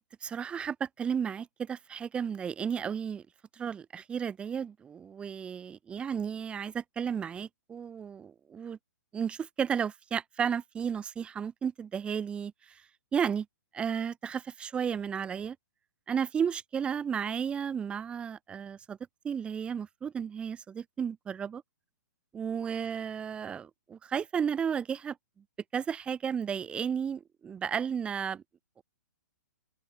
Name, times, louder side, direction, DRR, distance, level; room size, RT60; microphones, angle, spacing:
voice 1, 0.0-3.3 3.5-8.8 9.1-12.8 13.1-13.5 13.7-15.6 16.1-19.0 19.2-21.6 22.3-25.2 25.7-28.4, right 7 dB, 10° right, 0.4 m, -33 dB
open air
hypercardioid pair, 125°, 10 cm